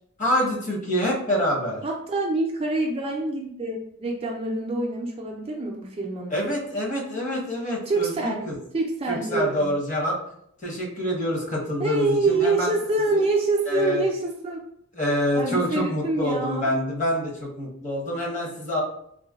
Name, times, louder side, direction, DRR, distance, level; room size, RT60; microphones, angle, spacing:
voice 1, 0.2-1.8 6.3-8.6 9.1-10.2 10.6-12.7 13.1-13.2 13.7-14.0 14.9-18.8, equal, 35° left, -3 dB, 0.8 m, -26 dB
voice 2, 1.8-6.4 7.9-8.4 8.7-9.7 11.8-14.6 15.3-16.7, right 2 dB, 25° right, 0 dB, 0.3 m, -26 dB
3.7 x 2.1 x 2.3 m, 0.70 s
head